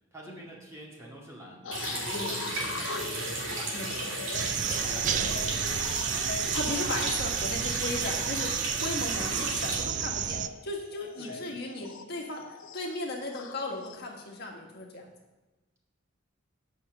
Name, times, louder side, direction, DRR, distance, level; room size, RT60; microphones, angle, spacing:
voice 1, 0.1-4.4 4.8-6.3 6.7-7.3 9.3-9.6 11.2-11.5, right 1 dB, 15° right, -4 dB, 2.1 m, -47 dB
sound 1, 1.6-14.0, left 5 dB, 90° left, 0.6 m, -41 dB
Water tap faucet, 1.7-9.8, right 2 dB, 70° right, 2.4 m, -34 dB
sound 2, 4.3-10.5, right 9 dB, 40° right, 0.3 m, -31 dB
voice 2, 6.5-10.4 10.6-15.1, left 2 dB, 55° left, 0 dB, 1.5 m, -36 dB
8.3 x 5.8 x 6.7 m, 1.1 s
head